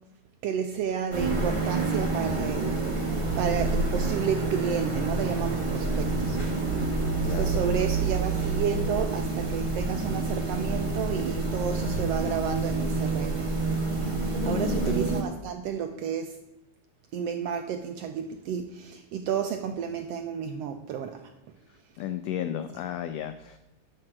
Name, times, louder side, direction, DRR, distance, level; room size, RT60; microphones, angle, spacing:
voice 1, 0.4-6.8 7.1-13.5 14.4-16.4 17.1-21.3, right 7 dB, 80° right, 6 dB, 1.4 m, -31 dB
sound 1, 1.1-15.2, right 3 dB, 25° right, 0.7 m, -28 dB
voice 2, 7.3-7.7 14.4-15.0 22.0-23.6, left 10 dB, 85° left, 9 dB, 1.4 m, -33 dB
11.0 x 4.7 x 7.3 m, 0.93 s
omnidirectional pair, 3.4 m